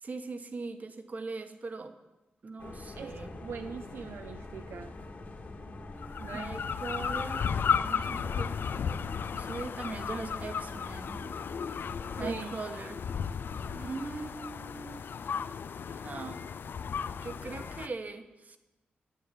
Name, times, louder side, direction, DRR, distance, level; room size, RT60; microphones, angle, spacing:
voice 1, 0.0-1.9 2.4-3.3 6.3-8.6 8.8-11.2 12.2-13.0 13.6-15.1 15.9-16.5 17.2-18.6, right 3 dB, 45° right, 1.3 m, -40 dB
sound 1, 2.6-12.3, left 2 dB, 45° left, 2.1 m, -45 dB
voice 2, 2.9-5.0 6.2-6.6 12.2-12.6, right 6 dB, 80° right, 0.6 m, -41 dB
sound 2, 6.0-17.9, left 7 dB, 65° left, 0.5 m, -34 dB
12.0 x 9.7 x 8.5 m
wide cardioid pair, 110°, 4 cm